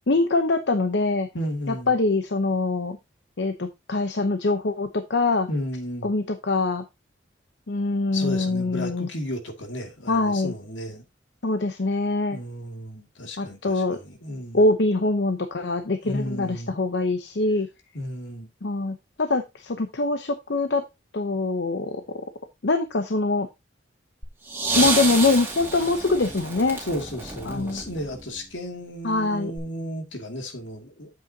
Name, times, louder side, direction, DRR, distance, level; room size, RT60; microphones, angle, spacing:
voice 1, 0.1-1.3 1.9-3.0 3.4-5.5 6.0-6.8 7.7-9.1 10.1-10.5 11.4-12.4 13.4-14.0 14.5-17.7 18.6-20.8 21.1-22.2 22.6-23.5 24.8-26.8 27.5-27.8 29.0-29.5, left 2 dB, 60° left, 0.8 m, -24 dB
voice 2, 1.3-1.9 5.5-6.1 8.1-11.0 12.3-14.6 16.0-16.7 17.9-18.5 26.8-31.1, equal, 75° left, 2.2 m, -33 dB
sound 1, 24.2-28.4 29.6-29.7, right 3 dB, 10° right, 2.2 m, -29 dB
8.8 x 7.7 x 2.8 m
head